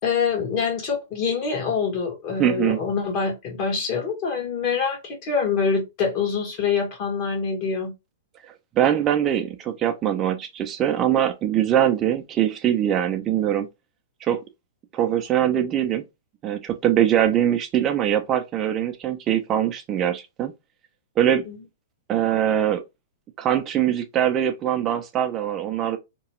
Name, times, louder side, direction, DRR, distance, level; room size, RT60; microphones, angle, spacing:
voice 1, 0.0-7.9 21.5-21.6, left 5 dB, 45° left, 1.3 m, -25 dB
voice 2, 2.4-2.8 8.8-13.7 14.2-14.4 14.9-16.0 16.4-20.5 21.2-21.4 22.1-22.8 23.4-26.0, right 10 dB, 30° right, 0.4 m, -22 dB
2.9 x 2.2 x 3.0 m
hypercardioid pair, 125°, 0 cm